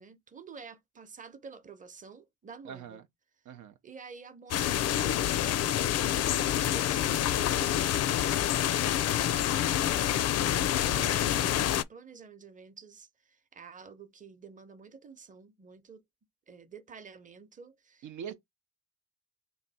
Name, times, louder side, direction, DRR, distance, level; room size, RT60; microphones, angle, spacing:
voice 1, 0.0-3.0 3.8-5.6 6.0-16.0 16.5-18.3, right 5 dB, 25° right, 0.8 m, -50 dB
voice 2, 2.6-3.1 3.4-3.8 10.4-11.2 18.0-18.3, right 8 dB, 75° right, 0.6 m, -44 dB
sound 1, 4.5-11.8, left 11 dB, 55° left, 0.4 m, -27 dB
3.2 x 2.7 x 4.0 m
cardioid pair, 90°, 30 cm